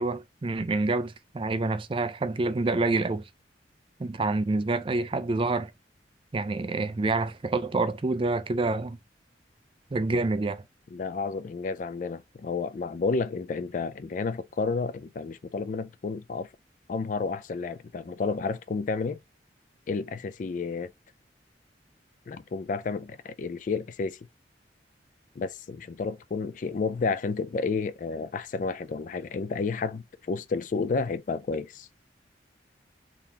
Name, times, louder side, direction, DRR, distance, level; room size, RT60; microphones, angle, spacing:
voice 1, 0.0-3.2 4.0-5.7 6.3-9.0 9.9-10.6, right 3 dB, 30° right, 0.4 m, -27 dB
voice 2, 10.9-16.5 16.9-19.2 19.9-20.9 22.3-24.2 25.4-31.9, left 4 dB, 45° left, 0.3 m, -31 dB
3.8 x 2.8 x 3.3 m
head